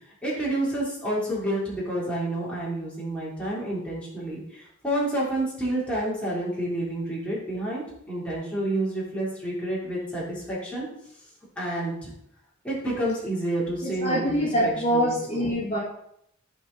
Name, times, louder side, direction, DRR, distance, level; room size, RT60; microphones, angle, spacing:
voice 1, 0.2-10.9 11.6-12.1 12.6-15.6, right 1 dB, 5° left, -7 dB, 3.4 m, -29 dB
voice 2, 13.8-15.8, equal, 30° left, -7 dB, 2.4 m, -25 dB
14.0 x 5.1 x 4.0 m, 0.74 s
head